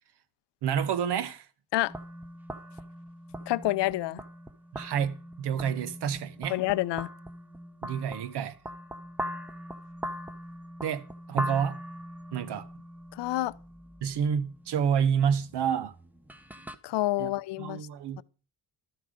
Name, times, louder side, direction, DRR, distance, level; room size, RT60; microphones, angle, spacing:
voice 1, 0.6-1.5 4.7-6.6 7.8-8.6 10.8-11.8 12.3-12.7 14.0-15.9 17.2-17.3 17.6-18.2, right 8 dB, 75° right, 1.0 m, -29 dB
sound 1, 1.9-16.8, equal, 5° right, 0.6 m, -41 dB
voice 2, 3.5-4.2 6.5-7.1 13.1-13.5 16.8-17.9 18.2-18.3, left 17 dB, 80° left, 0.6 m, -28 dB
12.5 x 7.8 x 5.0 m
cardioid pair, 120°, 41 cm